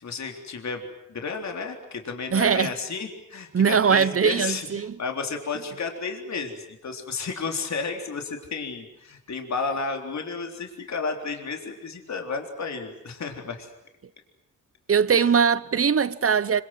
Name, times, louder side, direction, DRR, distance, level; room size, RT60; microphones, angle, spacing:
voice 1, 0.0-13.7 15.1-15.3, left 4 dB, 55° left, 3.8 m, -32 dB
voice 2, 2.3-2.7 3.5-5.0 14.9-16.6, right 6 dB, 45° right, 1.1 m, -21 dB
27.0 x 25.5 x 7.9 m
wide cardioid pair, 110°, 32 cm